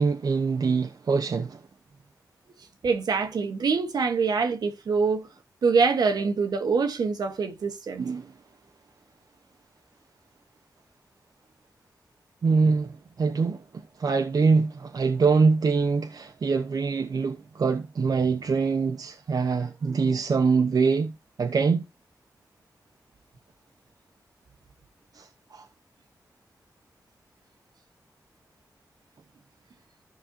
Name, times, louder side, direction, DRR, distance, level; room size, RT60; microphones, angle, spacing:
voice 1, 0.0-1.6 8.0-8.3 12.4-21.1 21.4-21.8 25.1-25.6, right 4 dB, 70° right, 0.9 m, -24 dB
voice 2, 2.8-5.3 5.6-8.1, right 5 dB, 85° right, 1.4 m, -24 dB
14.0 x 5.4 x 2.8 m
cardioid pair, 65°, 7 cm